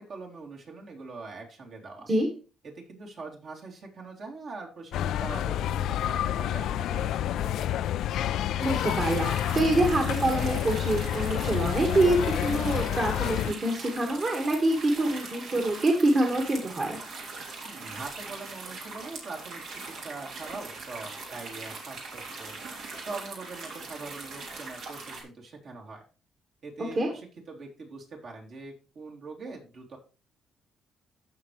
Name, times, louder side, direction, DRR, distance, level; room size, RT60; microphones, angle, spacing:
voice 1, 0.0-2.1 2.7-7.8 17.6-22.6 23.0-26.0 26.6-30.0, right 3 dB, 60° right, -1 dB, 3.4 m, -43 dB
sound 1, 4.9-13.5, left 11 dB, 80° left, 0.3 m, -29 dB
voice 2, 8.6-17.0 27.0-27.1, right 1 dB, 40° right, 2 dB, 2.0 m, -26 dB
sound 2, 8.6-25.2, right 3 dB, 80° right, 3.4 m, -41 dB
15.0 x 5.5 x 3.3 m, 0.34 s
cardioid pair, 90°, 0 cm